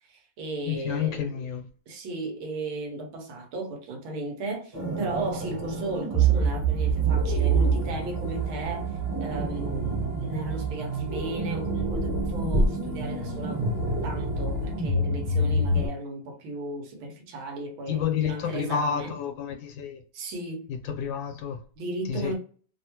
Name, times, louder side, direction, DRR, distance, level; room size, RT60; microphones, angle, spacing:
voice 1, 0.1-1.4 1.9-8.9 9.2-13.7 14.0-19.2 20.1-20.7 21.8-22.4, right 2 dB, 80° right, 1.6 m, -35 dB
voice 2, 0.7-1.6 17.9-20.0 20.7-21.6 22.1-22.4, left 8 dB, 75° left, 1.3 m, -30 dB
sound 1, 4.7-15.9, right 3 dB, 25° right, 1.0 m, -26 dB
3.6 x 2.1 x 2.9 m
omnidirectional pair, 2.2 m